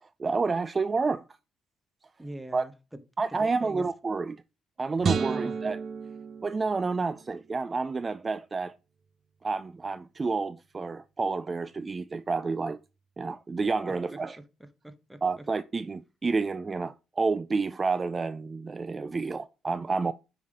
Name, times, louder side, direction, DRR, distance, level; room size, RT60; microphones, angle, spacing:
voice 1, 0.0-1.2 2.5-2.7 3.2-4.4 4.8-5.8 6.4-8.7 9.4-12.8 13.2-14.4 15.2-20.1, right 4 dB, 30° right, 0.4 m, -29 dB
voice 2, 2.2-3.0 3.3-3.9 5.2-5.6 13.9-14.0 14.6-15.4, right 1 dB, 5° right, 1.0 m, -43 dB
sound 1, 5.0-7.4, right 6 dB, 50° right, 0.8 m, -31 dB
9.2 x 3.5 x 3.6 m
cardioid pair, 90°, 0 cm